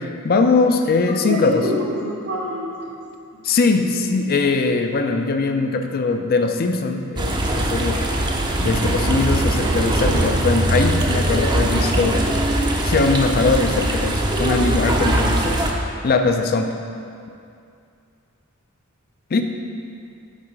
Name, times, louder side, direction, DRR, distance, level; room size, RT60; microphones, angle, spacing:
voice 1, 0.0-1.6 3.4-8.1 8.6-12.3 12.8-15.7 16.0-16.7 19.3-19.4, left 4 dB, 45° left, 6 dB, 0.4 m, -21 dB
voice 2, 1.1-2.9 3.8-3.9, equal, 75° right, -4 dB, 1.5 m, -26 dB
sound 1, 7.2-15.7, right 1 dB, 20° right, 0.5 m, -21 dB
7.5 x 3.6 x 5.0 m, 2.5 s
head